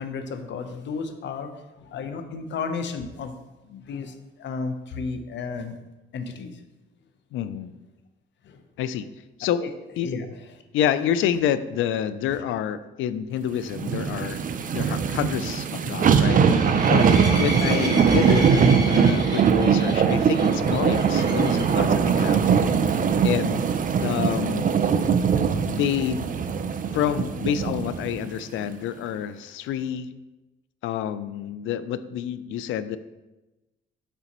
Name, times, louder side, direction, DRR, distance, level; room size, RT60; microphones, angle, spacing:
voice 1, 0.0-3.4 3.7-5.7 6.1-6.6 8.4-8.6 9.6-9.7 10.0-10.3 12.3-12.4, left 5 dB, 65° left, 8 dB, 0.8 m, -33 dB
voice 2, 7.3-7.7 8.8-9.1 9.4-9.6 10.0-10.1 10.7-14.4 14.7-17.1 17.4-22.4 22.8-23.7 24.0-24.9 25.6-26.3 26.9-30.1 30.8-33.0, left 9 dB, 85° left, 13 dB, 0.4 m, -28 dB
sound 1, 13.7-28.2 28.6-28.7, right 6 dB, 45° right, 0.5 m, -21 dB
sound 2, 13.9-21.8 22.4-22.7 23.0-23.1 23.5-23.6 27.1-27.2, right 1 dB, 20° right, 1.7 m, -35 dB
6.8 x 6.8 x 3.0 m, 1.1 s
cardioid pair, 90°, 20 cm